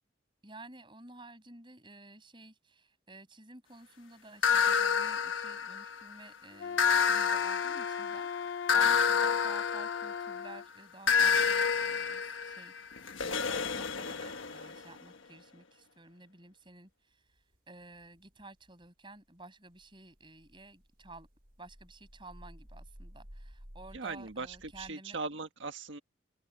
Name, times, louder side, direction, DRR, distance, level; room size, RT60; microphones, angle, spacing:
voice 1, 0.4-12.8 13.2-21.3 21.6-25.2, right 2 dB, 25° right, 7.4 m, -53 dB
sound 1, 4.4-6.1 6.8-10.5 11.1-14.8, left 6 dB, 90° left, 1.4 m, -29 dB
Wind instrument woodwind instrument, 6.5-10.7, left 7 dB, 70° left, 0.5 m, -38 dB
sound 2, 17.3-18.9 19.3-19.4 19.7-24.9, equal, 50° right, 5.6 m, -54 dB
voice 2, 23.9-26.0, right 3 dB, 75° right, 1.6 m, -39 dB
open air
head